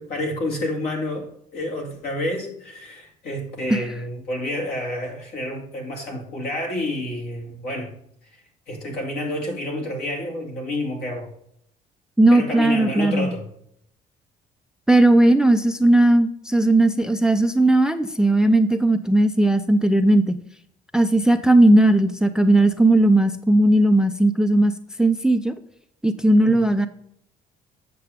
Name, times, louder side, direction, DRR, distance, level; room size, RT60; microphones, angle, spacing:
voice 1, 0.0-7.9 8.7-11.3 12.3-13.5 26.4-26.7, left 1 dB, 65° left, 1 dB, 2.5 m, -29 dB
voice 2, 12.2-13.3 14.9-20.4 20.9-24.7 25.0-25.5 26.0-26.9, right 1 dB, 5° right, 10 dB, 0.4 m, -17 dB
8.0 x 6.7 x 3.5 m, 0.70 s
cardioid pair, 110°, 17 cm